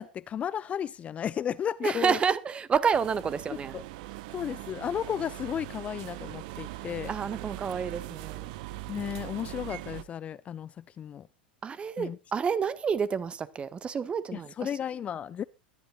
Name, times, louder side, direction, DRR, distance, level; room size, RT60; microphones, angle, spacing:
voice 1, 0.0-2.2 3.5-3.8 4.3-7.1 8.9-11.3 12.0-12.2 14.3-15.4, left 9 dB, 25° left, 0.5 m, -34 dB
voice 2, 1.8-3.7 7.1-8.5 11.6-14.7, right 6 dB, 20° right, 1.2 m, -29 dB
sound 1, 2.9-10.0, right 16 dB, 50° right, 0.8 m, -41 dB
22.0 x 11.5 x 2.4 m
figure-of-eight pair, 85°, 5 cm